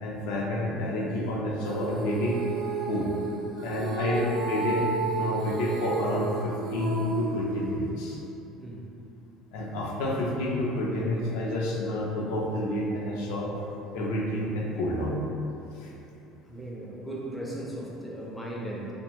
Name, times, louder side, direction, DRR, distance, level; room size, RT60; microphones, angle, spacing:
voice 1, 0.0-2.4 2.9-3.1 3.6-4.9 5.1-8.2 9.5-13.5 13.9-15.2 15.7-15.9, left 1 dB, 85° left, -3 dB, 0.4 m, -29 dB
Female singing, 1.6-8.1, right 3 dB, 60° right, 0.6 m, -32 dB
voice 2, 16.5-18.9, right 1 dB, 5° left, -4 dB, 0.3 m, -37 dB
2.6 x 2.1 x 3.0 m, 2.8 s
cardioid pair, 145°, 0 cm